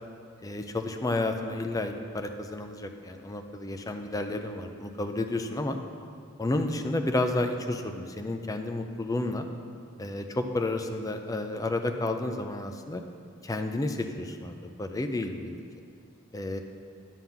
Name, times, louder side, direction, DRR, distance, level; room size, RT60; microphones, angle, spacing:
voice 1, 0.4-5.8 6.4-9.5 10.0-13.0 13.4-15.6 16.3-16.6, left 2 dB, 15° left, 6 dB, 0.4 m, -31 dB
9.1 x 3.8 x 7.0 m, 2.3 s
head